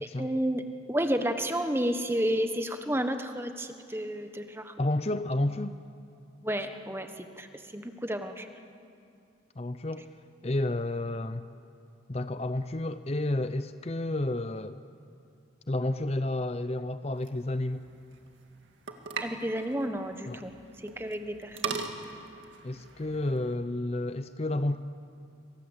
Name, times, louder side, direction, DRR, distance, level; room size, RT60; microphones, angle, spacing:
voice 1, 0.0-0.6 0.9-4.7 6.4-7.5 7.7-8.5 19.2-21.8, equal, 10° right, 1.3 m, -31 dB
voice 2, 4.8-5.8 9.6-10.1 10.4-11.4 12.1-14.8 15.7-17.9 20.3-20.4 22.6-24.8, left 1 dB, 35° left, 0.6 m, -31 dB
sound 1, 17.1-23.5, right 5 dB, 85° right, 2.1 m, -41 dB
27.0 x 25.5 x 8.2 m
head